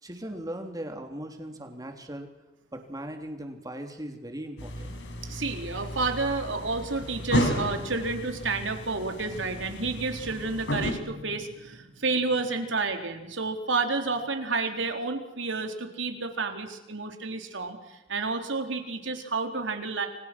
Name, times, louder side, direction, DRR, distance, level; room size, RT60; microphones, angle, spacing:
voice 1, 0.0-2.3 2.7-5.0, right 1 dB, 20° right, 4 dB, 3.6 m, -38 dB
sound 1, 4.6-10.9, equal, 75° left, 5.8 m, -33 dB
voice 2, 5.3-20.1, right 3 dB, 85° right, 5 dB, 4.0 m, -30 dB
30.0 x 25.5 x 6.2 m, 0.95 s
head